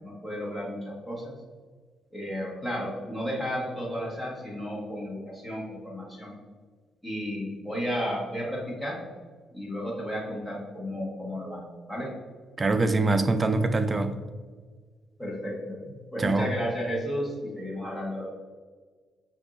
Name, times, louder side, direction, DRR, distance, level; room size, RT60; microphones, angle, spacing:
voice 1, 0.0-1.4 2.1-6.3 7.0-9.0 9.5-11.6 11.9-12.1 15.2-15.8 16.1-18.3, equal, 5° left, -5 dB, 1.4 m, -33 dB
voice 2, 12.6-14.1 16.2-16.5, right 3 dB, 30° right, 9 dB, 0.3 m, -24 dB
5.3 x 2.7 x 2.5 m, 1.5 s
cardioid pair, 90°, 0 cm